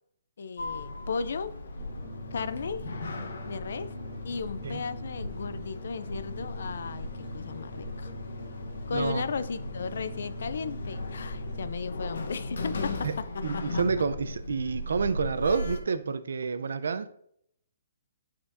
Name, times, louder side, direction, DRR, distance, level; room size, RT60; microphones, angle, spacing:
voice 1, 0.4-1.6 2.3-2.9 3.4-3.9 4.2-8.1 8.9-13.8, left 5 dB, 60° left, 0.4 m, -35 dB
Sliding door, 0.6-15.8, left 2 dB, 80° left, 1.0 m, -37 dB
sound 1, 1.8-11.7, left 1 dB, 30° left, 1.7 m, -42 dB
voice 2, 8.9-9.2 13.0-13.1 13.4-17.1, right 5 dB, 80° right, 0.6 m, -29 dB
11.0 x 4.3 x 2.6 m
hypercardioid pair, 175°, 0 cm